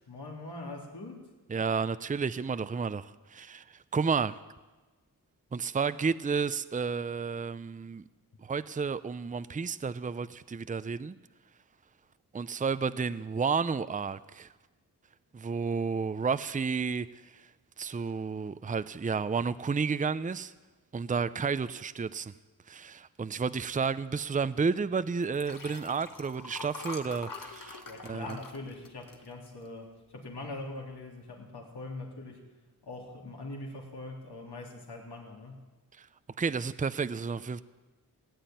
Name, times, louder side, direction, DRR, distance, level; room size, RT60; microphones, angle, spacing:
voice 1, 0.1-1.3 27.9-32.5 32.8-35.7, left 2 dB, 85° left, 3.2 m, -42 dB
voice 2, 1.5-3.6 3.9-4.4 5.5-8.0 8.4-11.1 12.3-14.5 15.3-17.1 17.3-17.4 17.8-20.5 20.9-22.3 22.7-28.4 36.0-36.1 36.4-37.6, right 5 dB, 20° right, 0.5 m, -31 dB
Liquid, 25.2-29.9 30.4-30.6 30.9-31.0, left 4 dB, 55° left, 1.7 m, -45 dB
17.5 x 9.2 x 9.1 m
cardioid pair, 55°, 39 cm